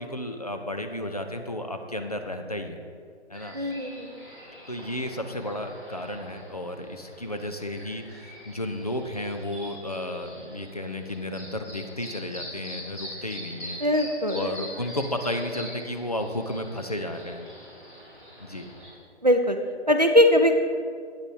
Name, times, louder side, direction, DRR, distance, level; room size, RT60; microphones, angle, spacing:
voice 1, 0.0-2.8 3.3-3.6 4.7-13.8 14.3-17.5 18.4-18.7, left 1 dB, 35° left, 5 dB, 0.5 m, -33 dB
sound 1, 3.3-18.9, equal, 10° left, 1.6 m, -44 dB
voice 2, 3.5-4.1 13.8-14.5 19.2-19.6 19.9-20.6, left 1 dB, 40° right, 6 dB, 0.4 m, -21 dB
8.5 x 6.4 x 4.6 m, 2.2 s
figure-of-eight pair, 150°, 34 cm